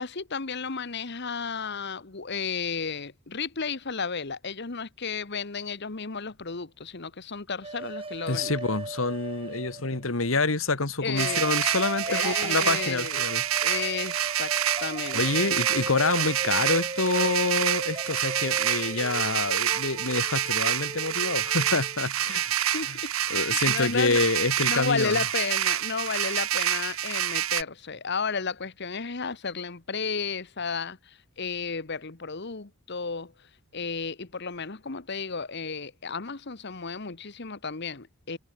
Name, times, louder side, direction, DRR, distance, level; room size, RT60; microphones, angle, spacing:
voice 1, 0.0-8.6 11.0-11.4 12.0-13.3 13.6-14.5 14.8-15.3 22.7-24.2 24.7-33.3 33.7-38.4, left 5 dB, 55° left, 1.3 m, -33 dB
sound 1, 7.6-10.2 11.2-22.0, right 2 dB, 25° right, 2.7 m, -38 dB
voice 2, 8.3-13.4 15.1-22.5 22.9-23.0 23.3-25.2, left 3 dB, 75° left, 2.0 m, -27 dB
sound 2, 11.2-27.6, right 10 dB, 90° right, 2.2 m, -28 dB
head